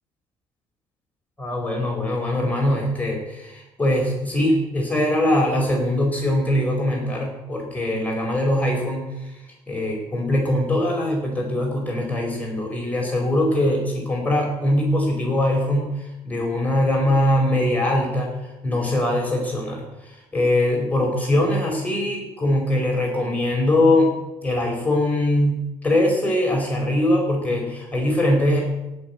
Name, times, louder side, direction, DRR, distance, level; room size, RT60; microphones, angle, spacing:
voice 1, 1.4-9.3 9.7-24.1 24.4-28.6, left 1 dB, 15° left, -1 dB, 4.9 m, -22 dB
17.0 x 6.2 x 8.2 m, 0.99 s
cardioid pair, 95°, 12 cm